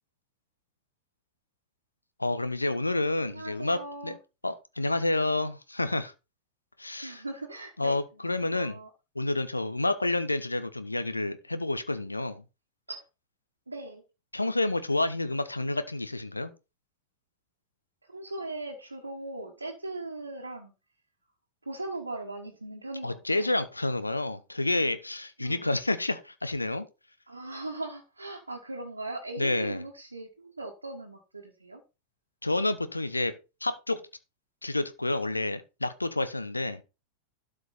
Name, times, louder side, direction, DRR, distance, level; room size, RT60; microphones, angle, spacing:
voice 1, 2.2-4.2 4.4-6.1 6.8-7.2 7.8-8.8 9.1-12.4 14.3-16.5 23.0-26.8 29.4-29.8 32.4-33.3 33.6-34.0 34.6-36.8, left 2 dB, 85° left, 0.9 m, -29 dB
voice 2, 3.3-4.2 7.0-8.9 12.9-13.0 13.7-14.0 18.1-20.7 21.6-23.6 25.4-25.7 27.3-31.8, right 2 dB, 80° right, 1.4 m, -39 dB
12.0 x 5.2 x 4.1 m
figure-of-eight pair, 90°, 0 cm